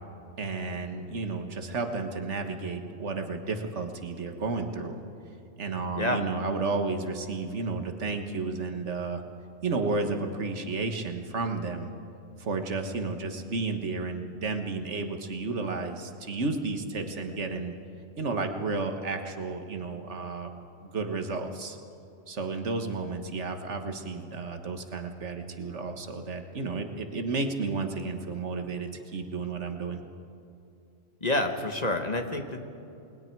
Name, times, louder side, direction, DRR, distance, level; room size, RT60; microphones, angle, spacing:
voice 1, 0.4-5.0 5.6-9.2 9.6-11.9 12.4-17.7 18.2-20.5 20.8-21.8 22.3-30.0, right 3 dB, 70° right, 5 dB, 1.7 m, -32 dB
voice 2, 31.2-32.6, left 2 dB, 35° left, 5 dB, 1.4 m, -28 dB
29.5 x 20.5 x 4.7 m, 2.7 s
omnidirectional pair, 1.3 m